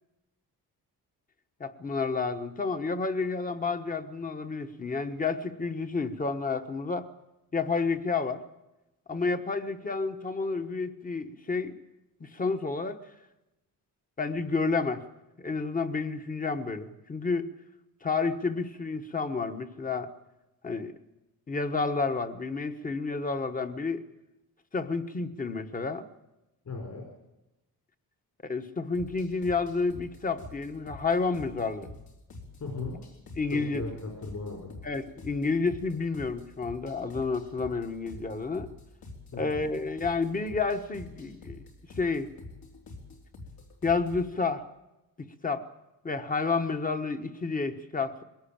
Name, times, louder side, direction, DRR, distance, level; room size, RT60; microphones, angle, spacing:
voice 1, 1.6-7.1 7.5-8.4 9.1-11.8 12.2-13.0 14.2-15.0 15.4-17.4 18.0-20.1 20.6-20.9 21.5-24.0 24.7-26.1 28.4-31.9 33.4-33.8 34.8-38.7 39.4-41.6 42.0-42.3 43.8-44.6 45.2-45.6 46.0-48.2, left 4 dB, 20° left, 9 dB, 1.2 m, -30 dB
voice 2, 26.6-27.1 32.6-33.0 33.5-34.7 39.3-39.6, left 3 dB, 50° left, 1 dB, 4.6 m, -37 dB
sound 1, 28.9-44.3, left 2 dB, 70° left, 4.2 m, -47 dB
21.5 x 17.5 x 8.8 m, 0.96 s
wide cardioid pair, 160°, 37 cm